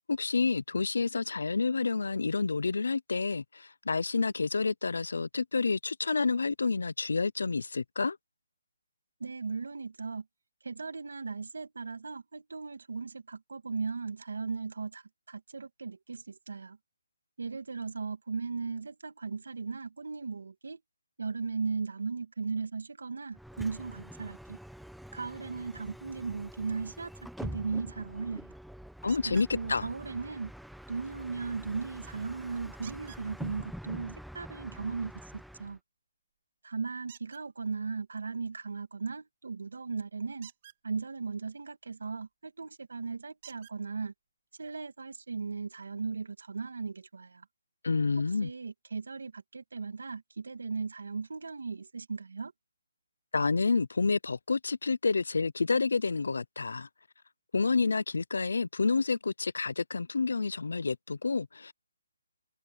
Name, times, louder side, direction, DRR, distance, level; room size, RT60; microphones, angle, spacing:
voice 1, 0.1-8.2 29.0-29.9 47.8-48.5 53.3-56.9 57.5-61.7, left 4 dB, 75° left, 0.6 m, -29 dB
voice 2, 9.2-10.3 10.6-16.8 17.4-20.8 21.2-24.6 25.1-27.1 27.4-28.5 29.3-30.5 30.9-35.8 36.6-40.5 40.8-44.1 44.6-47.5 48.4-52.5, right 4 dB, 75° right, 2.3 m, -37 dB
Bus, 23.3-35.8, equal, ahead, 1.0 m, -46 dB
sound 1, 29.1-29.5 32.8-33.2 37.1-37.4 40.3-40.8 42.5-42.6 43.4-43.8 44.8-44.9 45.3-45.4, right 11 dB, 30° right, 4.6 m, -51 dB
open air
hypercardioid pair, 175°, 0 cm